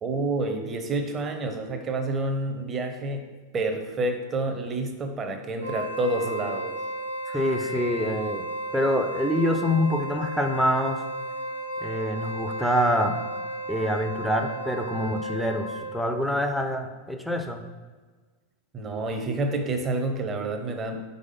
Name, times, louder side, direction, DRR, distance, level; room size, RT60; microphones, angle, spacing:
voice 1, 0.0-6.7 18.7-21.0, right 2 dB, 25° right, 5 dB, 0.8 m, -29 dB
Wind instrument woodwind instrument, 5.5-16.1, right 1 dB, 80° left, 0.9 m, -34 dB
voice 2, 7.3-8.4 8.7-11.0 11.8-13.2 13.7-17.6, equal, ahead, 5 dB, 0.5 m, -26 dB
4.7 x 4.1 x 5.4 m, 1.4 s
figure-of-eight pair, 90°, 0 cm